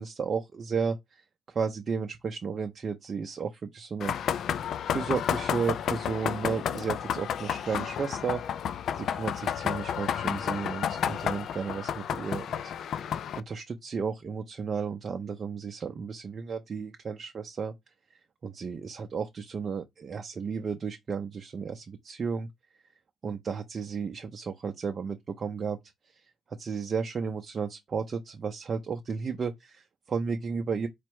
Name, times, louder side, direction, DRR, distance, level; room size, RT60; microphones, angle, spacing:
voice 1, 0.0-4.1 4.8-8.4 8.9-17.7 18.4-22.5 23.2-25.8 26.2-26.3 26.6-30.9, right 5 dB, 45° right, 0.5 m, -33 dB
sound 1, 4.0-13.4, left 9 dB, 65° left, 0.3 m, -31 dB
4.2 x 2.1 x 4.5 m
cardioid pair, 90°, 0 cm